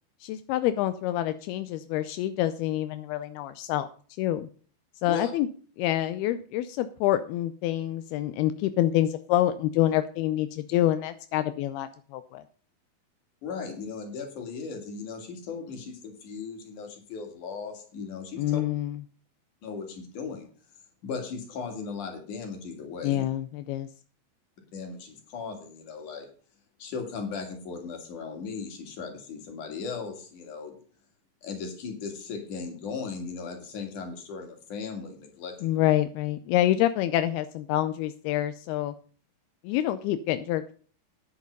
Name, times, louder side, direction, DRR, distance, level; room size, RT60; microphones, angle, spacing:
voice 1, 0.2-3.9 4.2-4.5 5.0-5.5 5.8-12.4 18.4-19.0 23.0-23.9 35.6-38.9 39.6-40.7, left 13 dB, 85° left, 11 dB, 2.6 m, -27 dB
voice 2, 13.4-18.6 19.6-20.5 21.0-23.3 24.7-26.3 26.8-30.8 31.4-35.8, left 5 dB, 55° left, 4 dB, 3.9 m, -37 dB
10.5 x 9.9 x 5.3 m, 0.41 s
omnidirectional pair, 4.4 m